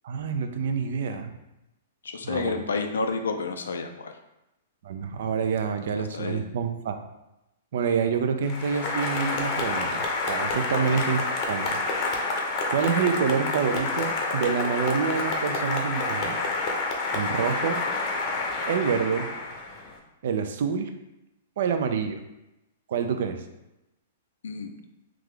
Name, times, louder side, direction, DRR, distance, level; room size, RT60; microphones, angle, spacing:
voice 1, 0.0-1.3 2.2-2.6 4.8-7.0 7.7-11.8 12.7-16.4 17.1-17.8 18.7-19.3 20.2-20.9 21.6-22.2 22.9-23.4, right 6 dB, 65° right, 7 dB, 0.4 m, -27 dB
voice 2, 2.0-4.1 6.1-6.4 10.7-11.0 24.4-24.7, left 4 dB, 85° left, 6 dB, 0.4 m, -30 dB
Applause, 8.4-19.9, left 3 dB, 40° left, 0.6 m, -28 dB
3.6 x 2.4 x 3.2 m, 0.93 s
hypercardioid pair, 130°, 0 cm